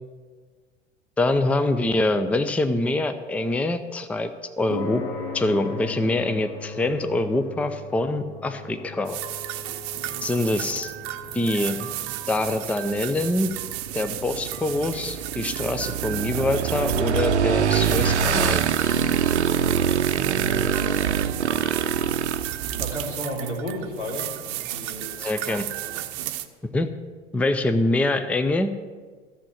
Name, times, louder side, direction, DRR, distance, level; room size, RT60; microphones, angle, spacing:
voice 1, 1.2-4.3 4.6-5.0 5.3-9.2 10.2-10.9 11.3-11.9 12.3-13.5 13.9-18.6 25.2-25.6 26.7-26.9 27.3-28.7, left 2 dB, 5° left, 10 dB, 0.5 m, -24 dB
sound 1, 4.7-21.2, left 4 dB, 50° left, 1.3 m, -41 dB
sound 2, 9.1-26.5, right 13 dB, 45° right, 0.8 m, -34 dB
Motorcycle / Engine, 13.5-23.1, right 7 dB, 75° right, 0.7 m, -24 dB
voice 2, 20.2-21.1 22.8-25.1, equal, 90° left, -4 dB, 3.2 m, -33 dB
14.0 x 7.1 x 7.4 m, 1.5 s
figure-of-eight pair, 75°, 34 cm